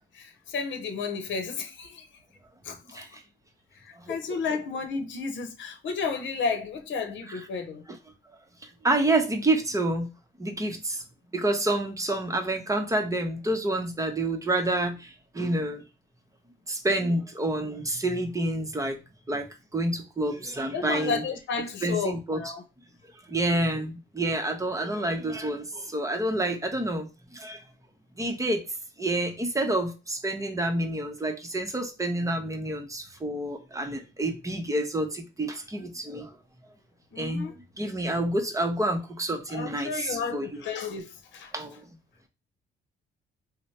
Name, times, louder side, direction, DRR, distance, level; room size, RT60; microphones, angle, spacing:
voice 1, 0.1-2.1 2.6-3.0 3.8-7.8 20.7-22.6 37.1-37.5 39.5-41.5, left 5 dB, 70° left, 0.8 m, -32 dB
voice 2, 8.8-10.1 10.4-11.0 11.3-15.8 16.7-19.0 19.3-21.2 21.8-22.4 23.3-27.6 28.2-28.6 29.0-36.4 37.2-40.6 41.5-41.8, right 1 dB, 15° right, 0.8 m, -28 dB
3.1 x 2.1 x 4.1 m
cardioid pair, 90°, 20 cm